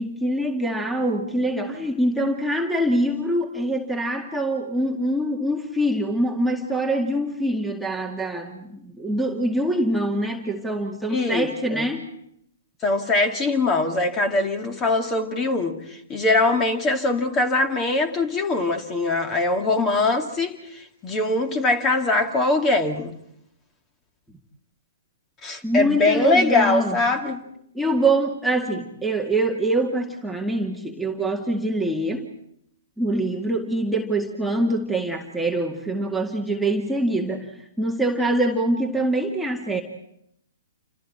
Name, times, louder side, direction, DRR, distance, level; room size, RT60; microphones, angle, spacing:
voice 1, 0.0-12.1 25.6-27.0 27.7-32.3 33.0-39.8, right 1 dB, ahead, 2.0 m, -24 dB
voice 2, 11.1-11.9 12.8-15.8 16.1-20.6 21.0-23.1 25.4-27.4, left 2 dB, 20° left, 2.5 m, -22 dB
29.5 x 27.0 x 4.5 m
figure-of-eight pair, 115°, 0 cm